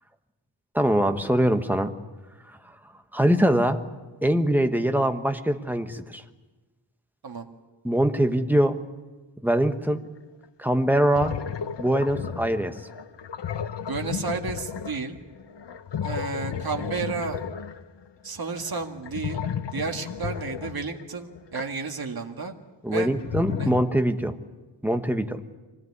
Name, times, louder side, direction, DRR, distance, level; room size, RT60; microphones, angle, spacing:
voice 1, 0.7-1.9 3.1-3.8 4.2-6.2 7.8-8.8 9.4-10.0 10.6-11.3 11.8-12.7 21.5-21.6 22.8-24.3 24.8-25.4, right 1 dB, 5° right, 7 dB, 1.2 m, -23 dB
sound 1, 10.4-10.5 11.0-21.6 22.9-23.8, left 7 dB, 70° left, 1.0 m, -33 dB
voice 2, 13.9-15.2 16.0-17.4 18.2-19.4 19.7-22.6 22.9-23.1 23.6-23.7, right 4 dB, 55° right, 4 dB, 2.0 m, -32 dB
24.5 x 18.0 x 9.7 m, 1.2 s
wide cardioid pair, 135°, 45 cm